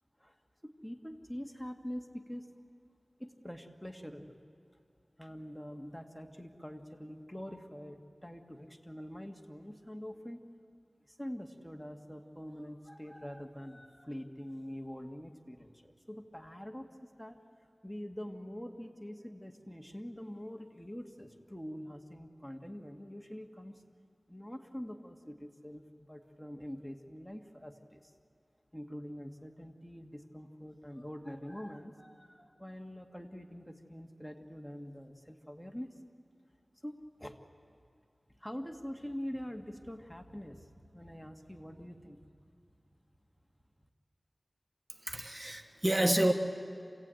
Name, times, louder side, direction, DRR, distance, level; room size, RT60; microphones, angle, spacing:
voice 1, 0.6-2.5 3.2-4.4 5.2-10.4 11.1-17.4 17.8-23.8 24.3-28.1 28.7-36.0 36.8-37.4 38.4-42.3, equal, 5° left, 3 dB, 1.7 m, -45 dB
voice 2, 45.0-46.3, right 1 dB, 30° right, 4 dB, 1.4 m, -28 dB
27.5 x 17.0 x 9.1 m, 2.3 s
wide cardioid pair, 50°, 0 cm